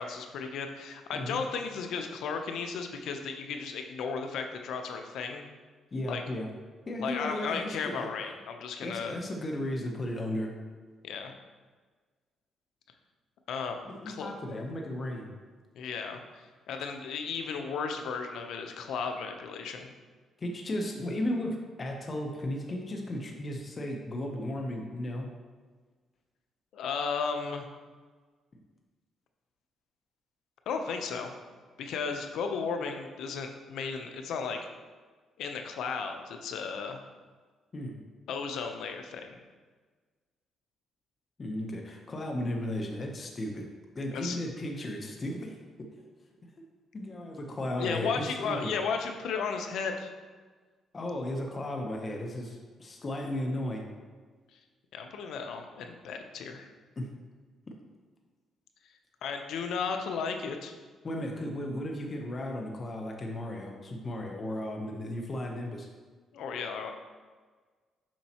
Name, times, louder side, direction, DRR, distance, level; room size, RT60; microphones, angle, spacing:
voice 1, 0.0-5.5 6.1-6.2 7.0-9.1 11.0-11.3 13.5-14.4 15.8-19.9 26.7-27.7 30.7-31.3 31.8-34.7 35.4-37.0 38.3-39.4 44.1-44.4 47.8-50.1 54.5-54.6 54.9-56.7 59.2-60.7 66.3-66.9, left 5 dB, 80° left, 5 dB, 0.7 m, -34 dB
voice 2, 5.9-6.5 6.9-8.1 8.8-10.5 13.9-15.3 20.4-25.3 37.7-38.0 41.4-43.7 43.9-45.6 46.6-46.7 46.9-48.7 50.9-53.9 57.0-57.1 57.7-57.8 61.0-65.9, left 1 dB, 35° left, 1 dB, 0.9 m, -35 dB
7.3 x 5.4 x 2.9 m, 1.4 s
cardioid pair, 90°, 0 cm